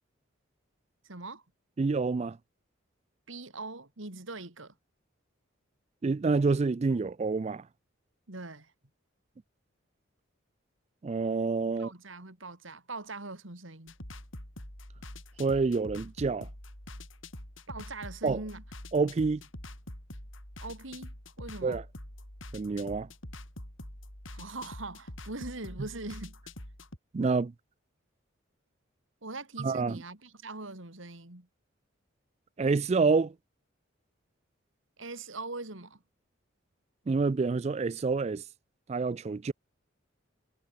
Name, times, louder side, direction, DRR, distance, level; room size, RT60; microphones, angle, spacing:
voice 1, 1.0-1.4 3.3-4.7 8.3-8.7 11.8-13.9 17.7-18.6 20.6-21.8 24.3-26.4 29.2-31.5 35.0-36.0, right 2 dB, 75° right, 3.3 m, -42 dB
voice 2, 1.8-2.4 6.0-7.6 11.0-11.9 15.4-16.5 18.2-18.4 18.9-19.4 21.6-21.8 22.5-23.1 27.1-27.5 29.6-30.0 32.6-33.3 37.1-38.4 38.9-39.5, right 4 dB, 30° right, 0.3 m, -27 dB
sound 1, 13.9-27.0, left 1 dB, 75° left, 7.8 m, -45 dB
head